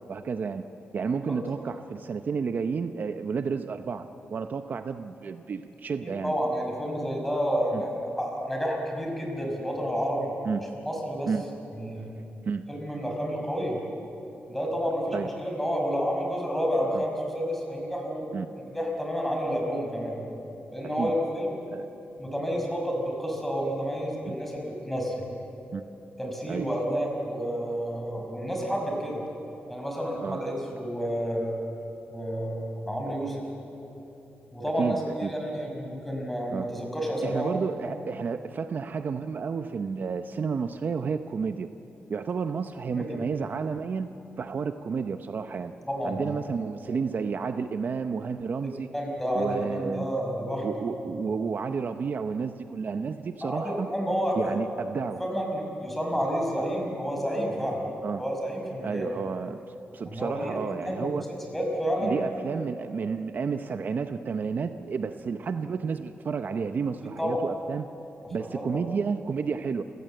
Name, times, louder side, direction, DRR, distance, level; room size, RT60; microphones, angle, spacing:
voice 1, 0.1-0.7 0.9-4.0 4.3-6.3 7.7-7.8 10.5-10.6 11.3-11.4 12.4-12.6 15.1-15.3 16.9-17.0 18.3-18.5 20.8-21.1 21.7-21.9 24.3-24.4 25.7-25.8 26.5-26.7 30.2-30.4 34.8-35.3 36.5-36.7 37.2-41.7 42.1-44.1 44.4-45.7 46.0-48.9 49.3-50.1 50.6-53.9 54.4-55.2 58.0-58.2 58.8-61.2 62.0-67.9 68.3-69.8, right 5 dB, 55° right, 9 dB, 0.7 m, -31 dB
voice 2, 6.0-10.3 10.8-11.3 11.8-12.1 12.7-13.8 14.5-18.3 18.7-20.2 20.7-21.5 22.2-25.2 26.2-29.2 29.7-31.5 32.1-33.5 34.5-37.5 37.8-37.9 42.9-43.2 45.9-46.3 48.9-50.9 53.4-54.6 55.2-57.8 58.2-59.1 60.0-61.1 61.5-62.2 67.2-67.4 68.5-68.8, equal, 5° left, 0 dB, 5.6 m, -30 dB
29.0 x 16.0 x 7.8 m, 2.9 s
wide cardioid pair, 110°, 4 cm